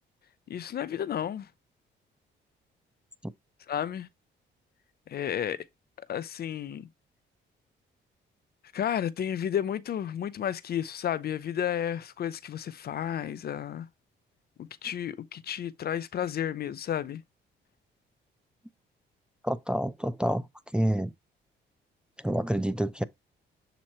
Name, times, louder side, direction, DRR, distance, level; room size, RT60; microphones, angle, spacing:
voice 1, 0.5-1.5 3.7-4.1 5.1-5.7 6.1-6.9 8.7-13.9 14.6-17.2, left 9 dB, 50° left, 0.5 m, -32 dB
voice 2, 19.4-20.5 20.7-21.1 22.2-23.0, right 1 dB, 5° right, 0.4 m, -28 dB
7.3 x 3.0 x 4.3 m
cardioid pair, 90°, 20 cm